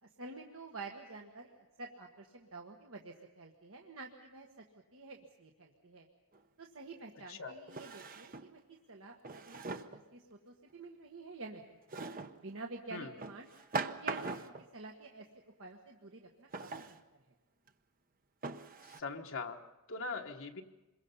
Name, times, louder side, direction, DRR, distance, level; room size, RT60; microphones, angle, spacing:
voice 1, 0.0-4.5 4.9-6.1 6.6-8.6 8.9-11.8 12.3-13.5 14.0-14.4 14.7-17.0, right 3 dB, 65° right, 1 dB, 1.5 m, -49 dB
Drawer open or close, 6.3-6.4 7.7-8.5 9.2-10.0 11.9-12.4 13.2-14.7 16.5-17.0 17.7-17.8 18.4-19.0, right 4 dB, 40° right, 0.9 m, -41 dB
voice 2, 18.8-20.6, left 4 dB, 60° left, 3 dB, 1.2 m, -42 dB
26.5 x 22.5 x 5.6 m, 1.1 s
head